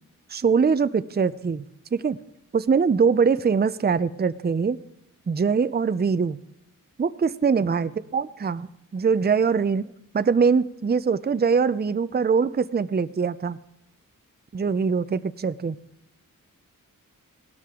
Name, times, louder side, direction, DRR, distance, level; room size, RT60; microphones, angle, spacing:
voice 1, 0.3-1.6 1.9-2.2 2.5-4.8 5.3-6.4 7.0-8.7 8.9-9.8 10.1-13.6 14.5-15.8, right 5 dB, 30° right, 14 dB, 0.5 m, -22 dB
17.0 x 12.5 x 3.7 m, 0.81 s
cardioid pair, 45°, 34 cm